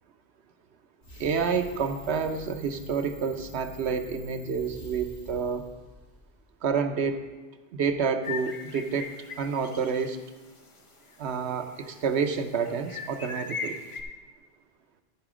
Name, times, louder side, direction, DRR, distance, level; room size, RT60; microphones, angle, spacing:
sound 1, 1.0-6.4, left 1 dB, 55° left, 2.1 m, -47 dB
voice 1, 1.2-5.7 6.6-7.3 7.7-10.2 11.2-13.8, right 6 dB, 90° right, 6 dB, 1.0 m, -29 dB
sound 2, 8.2-10.1 10.5-10.6 11.1-11.9 12.5-14.0, left 4 dB, 30° left, 0.8 m, -38 dB
14.0 x 5.0 x 4.9 m, 1.2 s
omnidirectional pair, 1.1 m